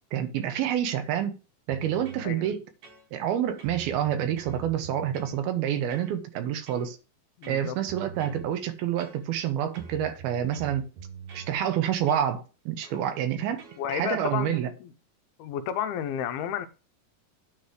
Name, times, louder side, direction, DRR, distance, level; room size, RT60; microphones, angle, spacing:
voice 1, 0.1-1.4 1.7-2.6 3.1-7.0 7.5-10.9 11.3-14.7, right 10 dB, 80° right, 2.7 m, -28 dB
sound 1, 1.7-2.3 2.8-3.3 3.6-5.4 5.9-6.1 6.7-6.9 7.4-8.5 9.0-9.5 9.7-11.5 12.1-12.3 12.8-13.1 13.6-13.8, right 6 dB, 55° right, 2.4 m, -45 dB
voice 2, 7.4-7.8 13.8-14.5 14.8-14.9 15.4-16.7, left 9 dB, 85° left, 2.5 m, -31 dB
9.6 x 3.3 x 6.2 m
omnidirectional pair, 4.4 m